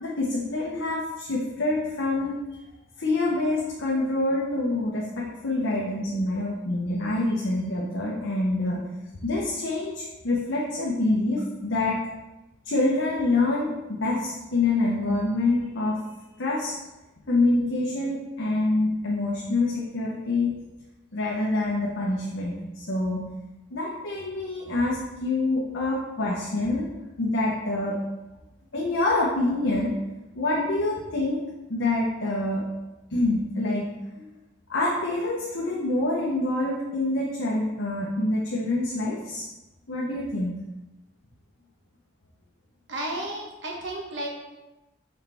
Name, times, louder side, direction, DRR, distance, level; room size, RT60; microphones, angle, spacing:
voice 1, 0.0-2.6 3.0-8.8 9.2-12.1 12.6-16.0 16.4-16.7 17.3-20.5 21.1-23.2 23.7-26.9 27.2-28.0 28.7-29.9 30.3-31.4 31.7-32.6 33.1-33.9 34.1-34.3 34.7-39.5 39.9-40.5, left 2 dB, 65° left, -5 dB, 1.0 m, -26 dB
voice 2, 42.9-44.3, right 1 dB, 60° right, -1 dB, 1.3 m, -32 dB
6.3 x 4.4 x 3.5 m, 1.0 s
head